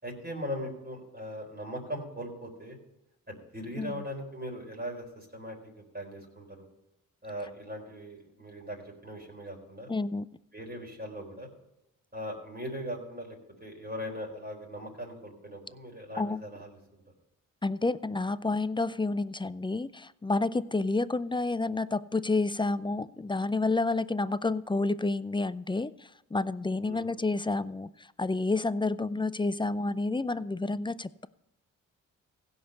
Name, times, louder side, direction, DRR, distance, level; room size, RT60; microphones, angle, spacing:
voice 1, 0.0-2.8 3.3-6.6 7.2-9.9 10.5-11.5 12.1-16.8 26.8-27.1, equal, 25° right, -1 dB, 4.2 m, -40 dB
voice 2, 9.9-10.3 16.2-16.4 17.6-25.9 26.3-27.9 28.2-31.3, left 3 dB, 15° left, 17 dB, 0.4 m, -29 dB
16.0 x 5.6 x 6.6 m, 0.90 s
supercardioid pair, 50°, 35 cm